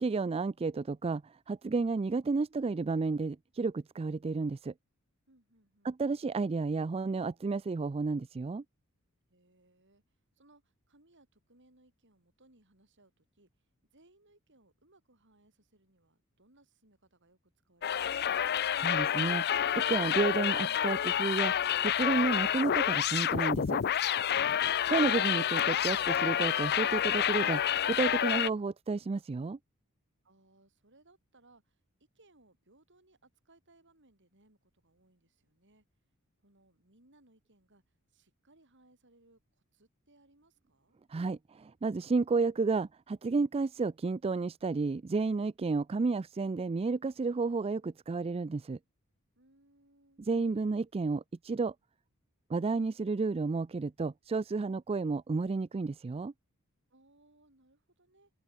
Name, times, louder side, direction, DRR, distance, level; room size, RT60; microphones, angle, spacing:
voice 1, 0.0-4.7 5.8-8.6 18.8-19.4 19.7-21.5 21.8-23.8 24.9-27.6 27.9-29.6 41.1-48.8 50.2-51.7 52.5-56.3, right 4 dB, 25° right, 0.3 m, -31 dB
voice 2, 5.3-5.9 9.3-17.4 17.6-18.7 30.2-35.9 36.4-41.0 49.4-50.2 56.9-58.3, right 2 dB, 55° right, 7.3 m, -66 dB
sound 1, 17.8-28.5, left 9 dB, 50° left, 0.5 m, -29 dB
head